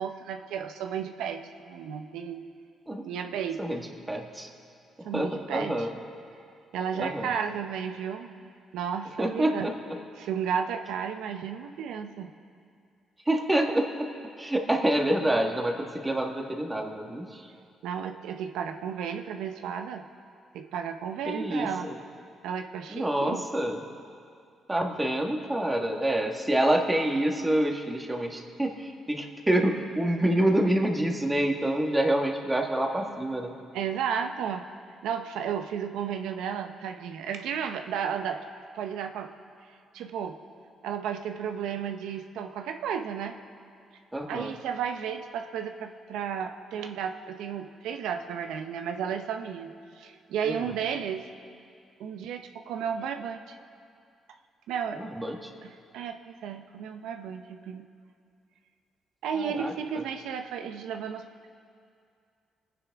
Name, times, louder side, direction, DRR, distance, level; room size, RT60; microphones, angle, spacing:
voice 1, 0.0-2.4 3.0-3.8 5.0-5.9 6.7-8.4 8.7-9.7 10.2-12.3 17.8-20.0 20.5-21.9 22.4-23.4 33.7-34.6 35.0-38.4 38.7-39.3 39.9-40.4 40.8-43.3 44.3-51.2 52.0-53.5 54.7-55.0 55.6-57.8 59.2-61.5, right 7 dB, 85° right, 6 dB, 0.8 m, -33 dB
voice 2, 4.1-4.5 5.1-5.9 7.0-7.3 9.2-9.7 13.3-14.1 14.4-17.4 21.3-22.0 22.9-23.8 24.7-33.5 44.1-44.5 50.4-50.7 55.0-55.5 59.3-59.7, right 1 dB, 15° right, 2 dB, 1.6 m, -27 dB
25.0 x 9.8 x 3.6 m, 2.3 s
cardioid pair, 90°, 0 cm